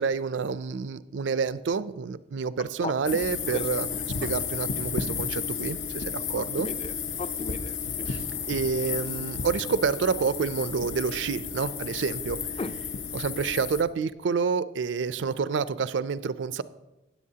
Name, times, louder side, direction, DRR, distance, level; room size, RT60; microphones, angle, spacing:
voice 1, 0.0-3.9 4.2-6.7 8.1-12.4 13.1-16.6, right 5 dB, 70° right, 16 dB, 0.4 m, -28 dB
voice 2, 2.8-3.2 3.5-3.6 4.2-4.3 6.3-8.1 12.6-12.7, left 3 dB, 30° left, 12 dB, 0.4 m, -36 dB
sound 1, 3.1-13.8, left 6 dB, 80° left, 0.8 m, -33 dB
17.0 x 7.9 x 2.8 m, 0.99 s
head